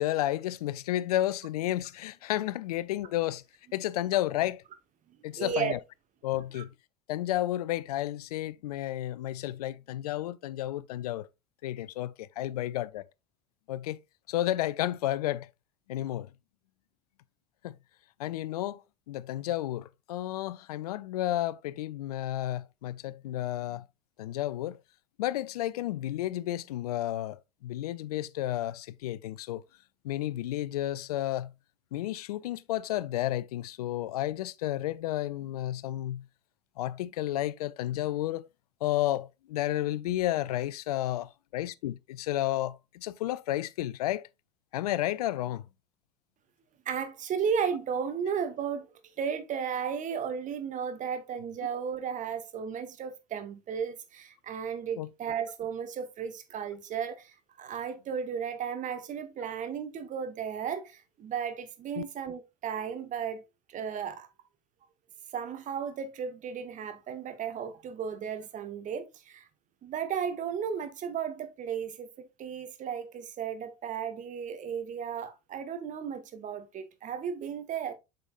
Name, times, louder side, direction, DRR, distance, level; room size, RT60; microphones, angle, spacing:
voice 1, 0.0-3.4 3.7-4.6 5.2-5.8 6.2-6.7 7.1-11.3 11.6-13.1 13.7-14.0 14.3-15.5 15.9-16.3 17.6-17.8 18.2-18.8 19.1-23.8 24.2-24.8 25.2-29.6 30.0-31.5 31.9-36.3 36.8-38.5 38.8-44.3 44.7-45.6 55.0-55.1 62.0-62.1, left 14 dB, 65° left, 0.4 m, -32 dB
voice 2, 5.4-5.8 6.5-6.6 46.8-48.9 49.2-63.4 63.7-64.3 65.3-69.5 69.8-77.9, right 7 dB, 40° right, 1.2 m, -34 dB
7.9 x 5.3 x 2.5 m
figure-of-eight pair, 65°, 21 cm